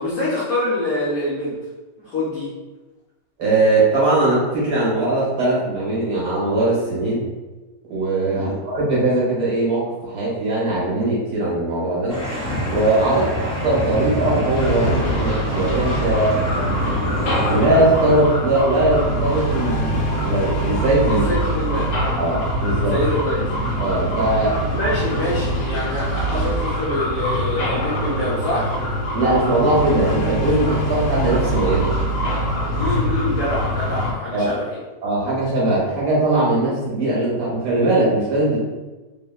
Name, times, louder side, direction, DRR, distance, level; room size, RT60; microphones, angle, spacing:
voice 1, 0.0-1.6 2.0-2.5 8.3-8.6 13.0-13.3 21.1-21.9 22.9-23.5 24.7-28.8 32.7-34.8, left 1 dB, 65° left, -8 dB, 0.9 m, -25 dB
voice 2, 3.4-7.2 7.9-12.2 12.7-13.2 13.6-16.3 17.5-21.3 22.2-22.9 23.8-24.5 29.1-31.9 34.3-34.5 35.0-38.6, right 2 dB, 65° right, -6 dB, 1.1 m, -20 dB
sound 1, 12.1-18.1, equal, 5° left, 0.8 m, -26 dB
sound 2, 14.5-34.1, equal, 85° left, 1.4 m, -23 dB
3.1 x 2.0 x 2.3 m, 1.2 s
omnidirectional pair, 2.0 m